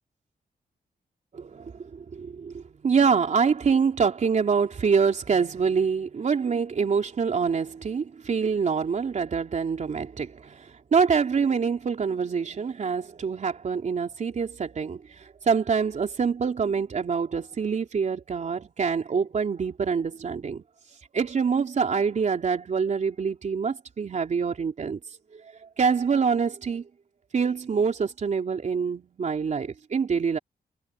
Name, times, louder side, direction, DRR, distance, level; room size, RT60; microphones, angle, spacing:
voice 1, 1.3-10.6 10.9-15.0 15.4-20.6 21.1-25.0 25.3-25.4 25.8-26.8 27.3-30.4, right 6 dB, 50° right, 3.3 m, -25 dB
cardioid pair, 115°, 16 cm